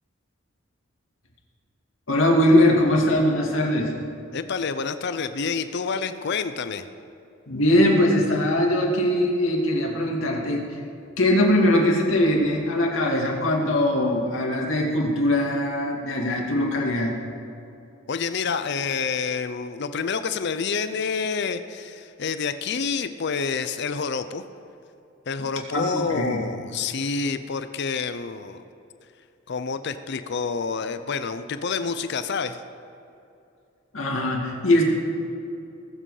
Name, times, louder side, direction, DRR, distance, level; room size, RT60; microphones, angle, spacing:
voice 1, 2.1-3.9 7.5-10.6 11.2-17.1 25.7-26.4 33.9-34.8, left 1 dB, 75° left, 0 dB, 2.3 m, -21 dB
voice 2, 4.3-6.9 18.1-24.4 25.3-28.6 29.5-32.6, left 5 dB, 60° left, 11 dB, 0.6 m, -28 dB
20.0 x 7.7 x 4.9 m, 2.7 s
head